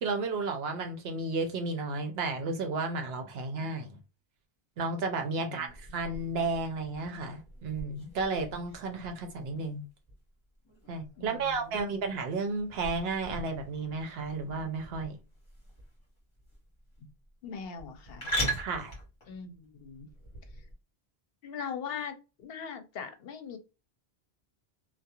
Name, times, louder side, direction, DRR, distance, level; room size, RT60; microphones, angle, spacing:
voice 1, 0.0-4.0 4.8-9.8 10.9-15.2 18.6-18.9, right 3 dB, 75° right, 5 dB, 0.8 m, -33 dB
voice 2, 5.4-5.7 11.2-12.0 17.4-18.3 19.3-20.1 20.6-20.7 21.4-23.6, left 6 dB, 70° left, 7 dB, 0.8 m, -41 dB
sound 1, 5.7-20.7, right 1 dB, 30° left, 1.2 m, -41 dB
2.3 x 2.2 x 2.8 m, 0.30 s
omnidirectional pair, 1.1 m